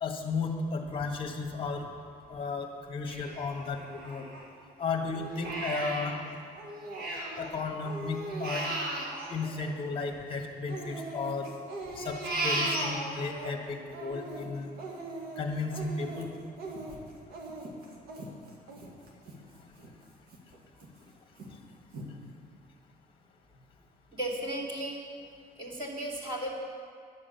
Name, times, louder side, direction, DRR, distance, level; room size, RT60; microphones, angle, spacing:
voice 1, 0.0-1.9 2.3-4.3 4.8-6.2 7.4-8.7 9.3-11.5 11.9-14.7 15.3-16.3 19.5-19.7 21.5-21.6, left 4 dB, 30° left, 3 dB, 1.5 m, -34 dB
Crying sobbing, 3.1-4.7 5.1-7.5 7.8-10.2 10.7-13.5 13.9-19.4 19.8-19.9 20.3-20.9 21.4-21.5 21.9-22.1, right 2 dB, 65° right, 2.0 m, -37 dB
voice 2, 24.1-25.0 25.6-26.5, right 1 dB, 30° right, -7 dB, 3.1 m, -35 dB
11.0 x 7.5 x 6.9 m, 2.2 s
cardioid pair, 110°, 17 cm